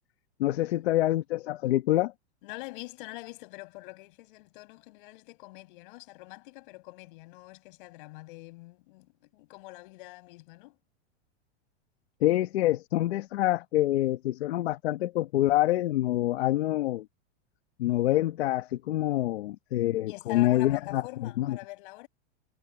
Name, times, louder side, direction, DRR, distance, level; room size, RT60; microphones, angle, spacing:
voice 1, 0.4-2.1 12.2-17.0 17.8-21.6, left 15 dB, 70° left, 1.3 m, -26 dB
voice 2, 2.4-10.8 20.1-22.1, left 22 dB, 50° left, 5.7 m, -45 dB
supercardioid pair, 160°, 32 cm